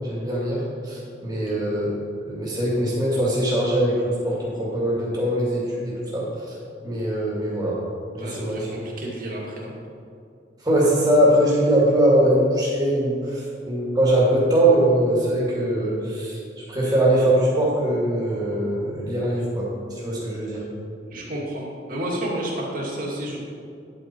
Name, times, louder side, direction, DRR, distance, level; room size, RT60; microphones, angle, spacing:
voice 1, 0.0-1.9 2.3-6.3 6.8-7.8 8.1-8.6 10.6-16.4 16.7-20.6, right 1 dB, 20° right, -6 dB, 2.5 m, -21 dB
voice 2, 8.2-9.7 21.1-23.4, right 1 dB, 50° right, -3 dB, 2.3 m, -31 dB
10.5 x 8.0 x 4.6 m, 2.5 s
head